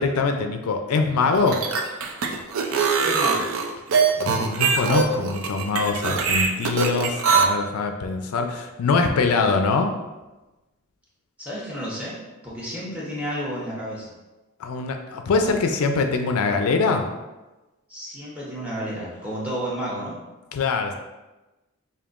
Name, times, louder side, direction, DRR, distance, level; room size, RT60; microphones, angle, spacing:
voice 1, 0.0-1.6 4.2-9.9 14.6-17.1 20.5-20.9, left 4 dB, 90° left, 5 dB, 0.4 m, -23 dB
sound 1, 1.3-7.4, right 5 dB, 70° right, 0.4 m, -22 dB
voice 2, 3.0-3.5 11.4-12.2 12.4-14.1 17.9-20.2, equal, 5° right, -7 dB, 0.9 m, -31 dB
5.1 x 2.6 x 2.4 m, 1.1 s
head